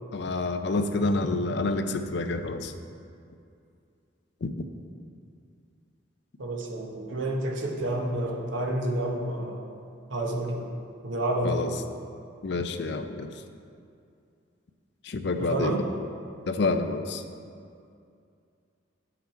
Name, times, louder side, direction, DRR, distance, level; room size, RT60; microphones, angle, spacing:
voice 1, 0.1-2.7 4.4-4.5 11.4-11.7 12.4-13.3 15.0-15.8 16.5-17.2, left 3 dB, 60° left, 8 dB, 0.5 m, -28 dB
voice 2, 6.4-9.6 10.1-10.7 11.0-11.7 15.4-15.8, right 1 dB, 70° right, 0 dB, 1.1 m, -29 dB
9.7 x 5.9 x 4.5 m, 2.4 s
head